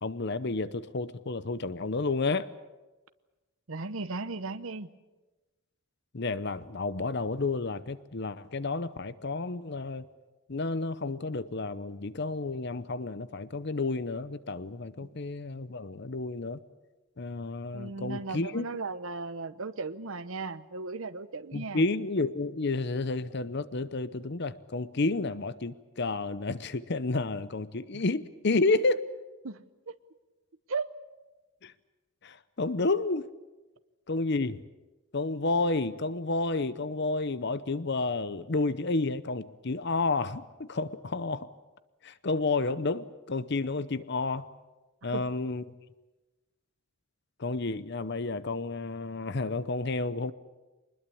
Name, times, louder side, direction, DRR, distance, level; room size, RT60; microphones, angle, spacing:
voice 1, 0.0-2.5 6.1-10.0 10.5-16.6 17.2-18.7 21.5-29.1 31.6-31.7 32.2-33.3 34.1-34.6 35.1-41.5 42.0-44.5 45.0-45.6 47.4-50.3, left 3 dB, 50° left, 15 dB, 0.8 m, -31 dB
voice 2, 3.7-4.9 15.0-15.1 17.7-21.8 27.9-28.0 29.4-29.9 30.7-30.9 45.1-45.2, right 3 dB, 70° right, 11 dB, 0.9 m, -36 dB
24.0 x 21.0 x 8.6 m, 1.1 s
head